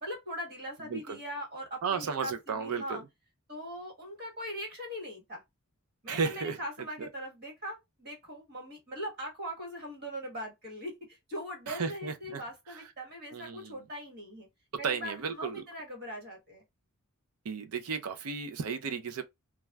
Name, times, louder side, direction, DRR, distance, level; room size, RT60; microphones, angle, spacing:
voice 1, 0.0-3.0 3.5-5.4 6.0-14.5 14.8-16.6, equal, 45° right, 1.4 m, -41 dB
voice 2, 1.8-3.0 6.1-6.6 7.0-7.1 11.7-12.4 12.7-12.8 13.3-13.8 14.8-15.6 17.4-19.2, right 5 dB, 90° right, 0.5 m, -34 dB
3.2 x 2.3 x 2.3 m
head